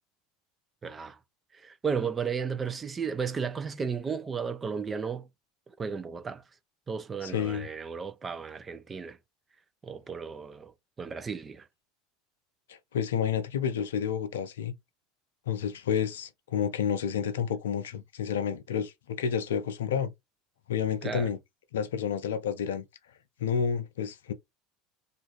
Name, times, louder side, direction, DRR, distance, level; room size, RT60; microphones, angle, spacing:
voice 1, 0.8-1.2 1.5-5.3 5.8-6.4 6.9-9.2 9.8-11.7 21.0-21.3, right 6 dB, 25° right, 0.6 m, -34 dB
voice 2, 7.2-7.7 12.7-14.7 15.5-20.1 20.7-21.4 21.7-22.8 23.4-24.3, left 8 dB, 80° left, 0.5 m, -30 dB
2.6 x 2.5 x 3.0 m
hypercardioid pair, 75°, 0 cm